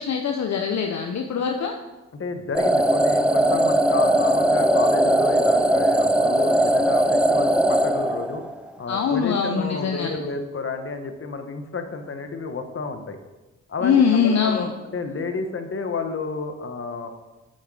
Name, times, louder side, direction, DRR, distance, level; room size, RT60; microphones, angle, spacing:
voice 1, 0.0-1.7 8.9-10.2 13.8-14.7, left 6 dB, 60° left, 3 dB, 0.9 m, -22 dB
voice 2, 2.1-8.4 8.8-13.2 13.7-14.7 14.9-17.1, left 4 dB, 45° left, 6 dB, 1.3 m, -30 dB
sound 1, 2.5-8.7, right 1 dB, 5° right, 0.6 m, -19 dB
7.8 x 6.5 x 4.9 m, 1.1 s
supercardioid pair, 50°, 31 cm